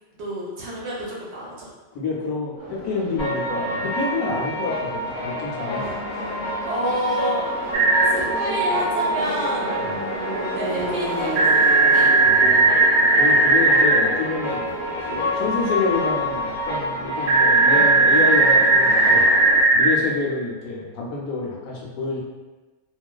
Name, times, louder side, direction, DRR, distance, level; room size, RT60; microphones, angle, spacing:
voice 1, 0.2-1.7 5.9-6.0 6.6-7.5 8.0-9.7 10.5-12.1, right 1 dB, 65° right, -5 dB, 0.8 m, -29 dB
voice 2, 1.9-5.9 9.8-10.0 12.2-12.7 13.1-14.6 15.1-19.2 19.7-22.2, left 3 dB, 85° left, -2 dB, 1.0 m, -27 dB
Subway metro underground, 2.6-19.6, right 1 dB, 30° right, 0.5 m, -34 dB
sound 1, 3.2-19.2, equal, 60° left, 0.8 m, -28 dB
sound 2, 7.7-8.1 11.4-14.0 17.3-19.9, right 3 dB, 90° right, 1.0 m, -16 dB
2.4 x 2.2 x 2.2 m, 1.2 s
omnidirectional pair, 1.4 m